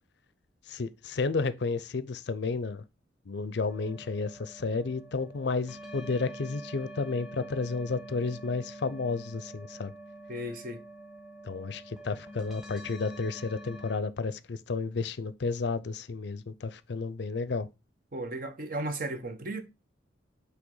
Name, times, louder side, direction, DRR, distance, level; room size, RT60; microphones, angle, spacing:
voice 1, 0.7-2.8 3.3-9.9 11.4-17.7, left 4 dB, 60° left, 0.5 m, -32 dB
sound 1, 3.7-14.0, right 1 dB, 5° right, 1.3 m, -46 dB
voice 2, 10.3-10.8 18.1-19.6, right 1 dB, 45° right, 1.0 m, -35 dB
7.8 x 3.3 x 3.8 m
head